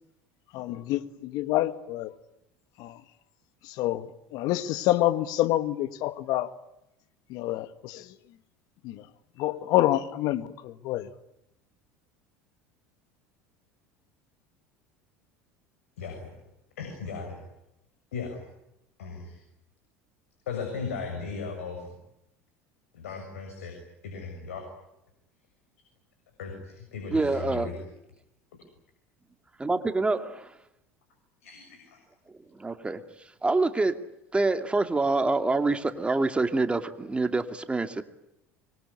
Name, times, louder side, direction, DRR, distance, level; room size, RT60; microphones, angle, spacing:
voice 1, 0.5-2.1 2.8-3.0 3.6-6.5 7.3-8.1 8.8-9.0 9.4-11.1, left 15 dB, 60° left, 12 dB, 1.8 m, -27 dB
voice 2, 16.0-16.3 16.8-17.4 18.1-18.4 19.0-19.4 20.5-21.9 22.9-23.7 24.0-24.6 26.4-27.8 31.4-32.0, left 5 dB, 80° left, 3 dB, 7.1 m, -37 dB
voice 3, 27.1-27.7 29.6-30.5 32.6-33.0 33.4-34.0 34.3-38.0, right 3 dB, 15° right, 8 dB, 2.5 m, -26 dB
25.5 x 23.0 x 9.9 m, 0.84 s
hypercardioid pair, 75°, 8 cm